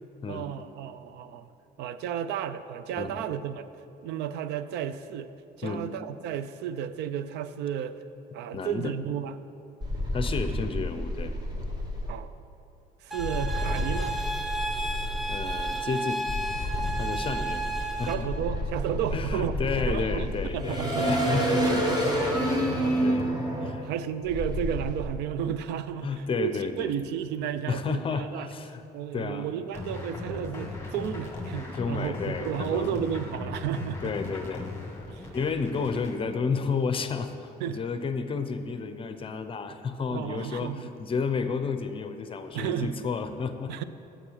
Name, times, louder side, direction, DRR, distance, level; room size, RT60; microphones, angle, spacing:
voice 1, 0.3-1.5 1.8-3.6 4.0-5.3 5.6-8.0 8.3-9.4 12.1-12.3 13.0-14.1 18.1-21.2 21.6-23.0 23.6-28.5 28.9-34.2 35.1-35.2 37.6-37.8 39.7-39.8 40.1-40.9 42.5-42.9 43.7-43.8, right 9 dB, 85° right, 13 dB, 0.5 m, -33 dB
voice 2, 8.5-8.9 10.1-11.3 15.3-16.2 17.0-17.7 18.0-18.3 19.1-21.6 22.0-23.3 23.6-23.9 26.0-26.9 27.7-28.8 29.1-29.5 31.8-33.0 34.0-43.8, left 5 dB, 30° left, 9 dB, 0.7 m, -32 dB
sound 1, 9.8-12.1 13.2-15.7 16.3-25.0, equal, 25° right, 1.8 m, -29 dB
sound 2, 13.1-18.1, right 2 dB, ahead, 0.9 m, -33 dB
sound 3, 29.7-36.1, left 3 dB, 15° left, 2.1 m, -38 dB
8.9 x 7.1 x 6.5 m, 2.8 s
cardioid pair, 110°, 17 cm